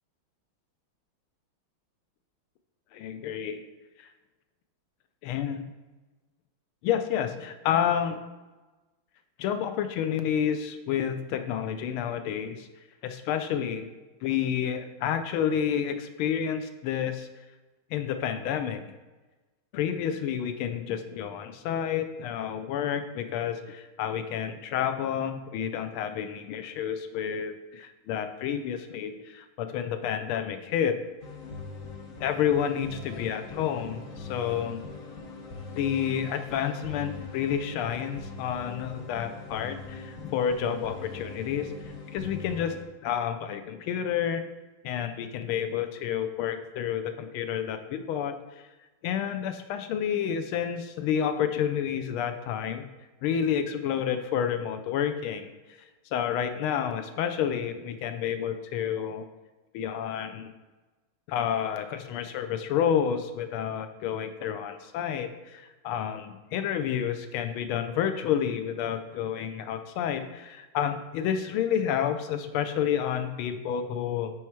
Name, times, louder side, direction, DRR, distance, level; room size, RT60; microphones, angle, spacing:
voice 1, 2.9-3.6 5.2-5.7 6.8-8.2 9.4-12.7 13.0-13.9 14.2-17.3 17.9-18.8 19.7-31.0 32.2-34.8 35.8-41.7 42.1-42.7 43.0-44.4 44.8-48.3 49.0-52.9 53.2-55.5 56.1-59.2 59.7-60.5 61.3-74.3, left 8 dB, 90° left, 8 dB, 1.5 m, -29 dB
sound 1, 31.2-42.8, left 3 dB, 55° left, 1.0 m, -42 dB
8.8 x 3.2 x 4.6 m, 1.2 s
omnidirectional pair, 2.3 m